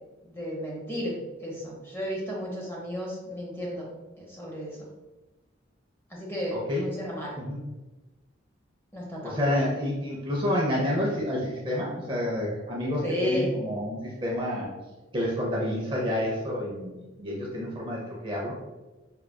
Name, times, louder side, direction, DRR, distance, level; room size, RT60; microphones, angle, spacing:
voice 1, 0.2-1.1 1.4-3.9 4.2-4.9 6.1-7.3 8.9-9.6 13.0-13.5, equal, 10° left, -3 dB, 0.8 m, -33 dB
voice 2, 6.5-6.9 7.4-7.6 9.2-14.7 15.1-18.5, left 1 dB, 25° right, -4 dB, 0.5 m, -29 dB
4.5 x 2.3 x 2.2 m, 1.1 s
head